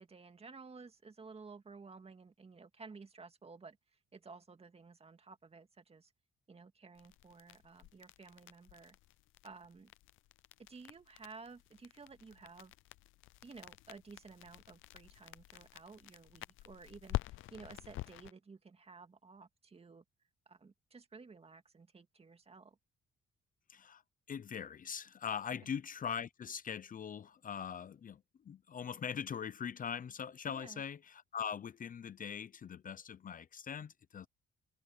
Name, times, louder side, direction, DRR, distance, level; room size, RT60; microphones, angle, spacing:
voice 1, 0.0-3.8 4.1-6.1 6.5-9.0 9.4-9.9 10.7-12.7 13.4-20.0 20.5-22.8 25.5-25.6 30.5-30.8, right 4 dB, 30° right, 2.2 m, -54 dB
sound 1, 6.9-18.3, left 17 dB, 85° left, 0.6 m, -47 dB
voice 2, 23.7-24.0 24.3-34.3, left 7 dB, 45° left, 0.7 m, -42 dB
cardioid pair, 90°, 20 cm